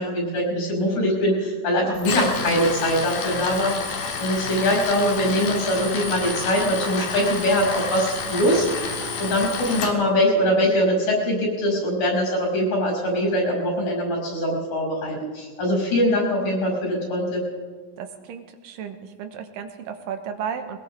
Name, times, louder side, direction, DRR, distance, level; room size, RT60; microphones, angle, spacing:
voice 1, 0.0-17.4, equal, 70° left, -1 dB, 6.9 m, -22 dB
Tools, 1.9-9.9, left 5 dB, 90° left, 3.3 m, -29 dB
voice 2, 18.0-20.8, right 7 dB, 80° right, 7 dB, 2.7 m, -34 dB
21.5 x 20.0 x 3.3 m, 1.5 s
omnidirectional pair, 3.9 m